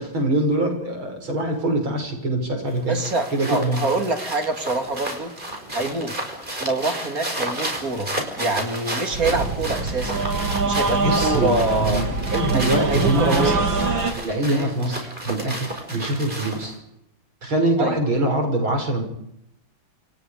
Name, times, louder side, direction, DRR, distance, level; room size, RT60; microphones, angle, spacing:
voice 1, 0.0-3.0 3.3-3.8 11.0-13.6 14.1-16.7 17.4-19.0, right 1 dB, 90° right, 4 dB, 7.2 m, -24 dB
sound 1, 2.7-16.8, right 1 dB, 25° right, 6.1 m, -32 dB
voice 2, 2.8-5.3 5.7-6.1 6.6-8.1 8.4-10.2 10.6-12.0 12.5-13.7 14.5-14.7 17.8-18.0, right 2 dB, 45° right, 6 dB, 3.4 m, -25 dB
sound 2, 9.1-14.1, right 4 dB, 70° right, 3.8 m, -24 dB
29.0 x 28.5 x 5.1 m, 0.78 s
omnidirectional pair, 2.2 m